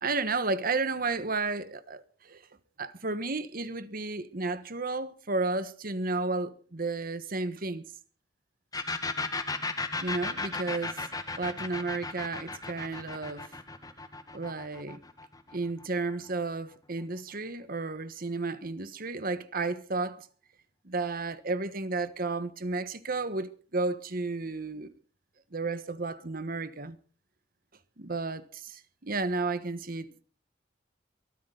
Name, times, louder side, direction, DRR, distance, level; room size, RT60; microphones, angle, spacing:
voice 1, 0.0-2.4 2.8-7.8 10.0-11.1 11.4-13.5 14.3-15.0 15.5-20.3 20.8-24.9 25.5-27.0 28.0-30.2, right 3 dB, 50° right, 1.4 m, -32 dB
sound 1, 8.7-16.2, left 3 dB, 20° left, 1.8 m, -35 dB
23.0 x 13.5 x 4.0 m
head